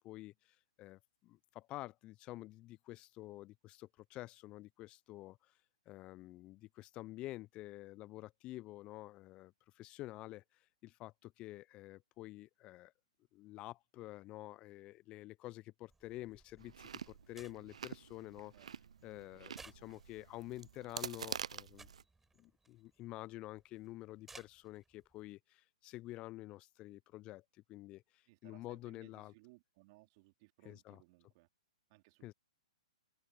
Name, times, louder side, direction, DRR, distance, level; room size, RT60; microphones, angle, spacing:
voice 1, 1.7-5.3 5.9-9.5 9.8-10.4 11.0-11.1 11.4-12.9 13.4-15.6 16.0-16.7 17.3-18.5 19.0-19.5 19.8-21.8 23.0-25.4 25.8-27.4 27.7-28.0 28.4-29.3 30.7-31.0 32.2-32.3, left 17 dB, 30° left, 0.5 m, -48 dB
sound 1, 15.9-25.3, right 3 dB, 5° right, 6.8 m, -63 dB
Chewing mastication, 16.6-22.0, right 7 dB, 70° right, 0.4 m, -47 dB
voice 2, 19.3-19.7 28.3-31.5 31.9-32.3, right 24 dB, 40° right, 3.0 m, -64 dB
open air
hypercardioid pair, 120°, 4 cm